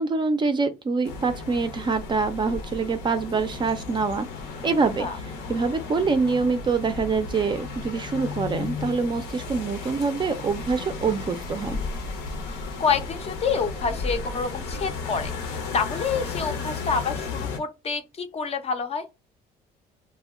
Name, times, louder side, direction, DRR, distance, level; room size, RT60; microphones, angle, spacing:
voice 1, 0.0-4.3 4.6-11.8, right 4 dB, 30° right, 0.4 m, -25 dB
sound 1, 1.0-17.6, left 4 dB, 85° left, 0.7 m, -34 dB
voice 2, 12.5-19.0, left 5 dB, 35° left, 0.5 m, -28 dB
2.1 x 2.1 x 3.5 m
cardioid pair, 110°, 17 cm